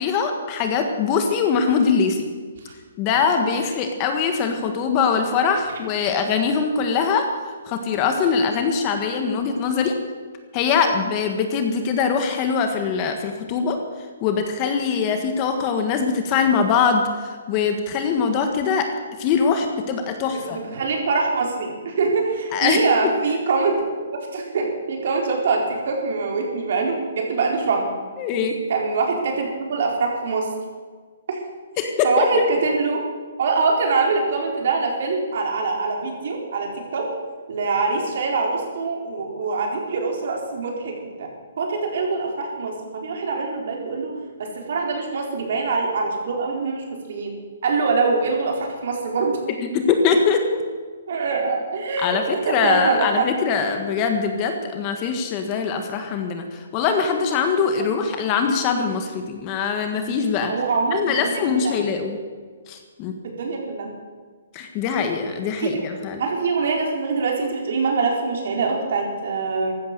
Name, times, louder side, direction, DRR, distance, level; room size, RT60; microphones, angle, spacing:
voice 1, 0.0-2.3 3.0-7.3 7.6-10.0 10.5-13.8 14.2-18.9 19.2-20.6 22.5-22.8 28.2-28.6 31.8-32.3 49.7-50.6 52.0-60.5 60.9-62.2 62.7-63.1 64.5-66.2, left 6 dB, 25° left, 5 dB, 1.6 m, -22 dB
voice 2, 20.5-23.8 24.3-27.9 28.7-30.5 31.3-31.4 32.0-33.0 33.4-37.1 37.5-41.3 41.6-44.1 44.4-47.3 47.6-49.4 51.1-52.2 52.4-53.3 53.7-53.8 60.5-61.8 63.2-63.9 65.6-65.7 66.2-69.7, right 4 dB, 55° right, 1 dB, 4.3 m, -24 dB
15.0 x 12.5 x 6.8 m, 1.5 s
hypercardioid pair, 165°, 0 cm